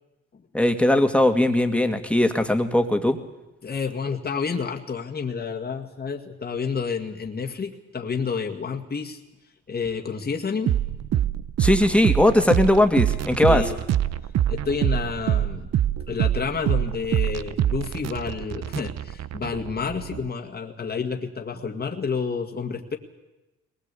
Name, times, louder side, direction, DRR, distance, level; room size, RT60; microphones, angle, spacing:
voice 1, 0.5-3.2 11.6-13.6, left 1 dB, 5° left, 6 dB, 2.1 m, -19 dB
voice 2, 3.6-9.2 9.7-10.8 13.5-13.8 14.5-15.7 16.1-23.0, left 5 dB, 30° left, 2 dB, 2.0 m, -29 dB
sound 1, 10.7-20.3, right 11 dB, 60° right, 0.8 m, -25 dB
21.5 x 20.0 x 8.4 m, 1.0 s
cardioid pair, 90°, 30 cm